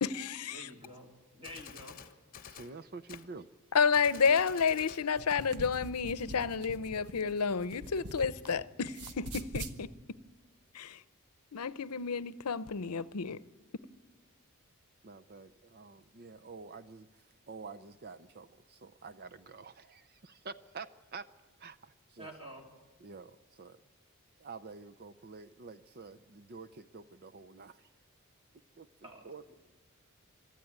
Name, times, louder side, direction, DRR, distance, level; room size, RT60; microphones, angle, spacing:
voice 1, 0.0-0.7 3.7-9.9 10.7-11.0 11.5-13.4, left 5 dB, 90° left, 0.7 m, -30 dB
voice 2, 0.5-2.0 22.2-22.6 29.0-29.6, equal, 25° right, 2.9 m, -49 dB
Gunshot gunfire, 0.8-0.9 1.4-2.7 3.1-3.3 3.9-5.1, left 7 dB, 40° left, 1.1 m, -49 dB
voice 3, 2.4-3.5 15.0-21.3 21.6-22.3 23.0-23.8 24.4-27.9 28.8-29.5, right 4 dB, 45° right, 0.6 m, -48 dB
sound 1, 5.0-8.5 8.8-9.8, right 2 dB, 85° right, 1.4 m, -43 dB
24.5 x 13.5 x 9.4 m
head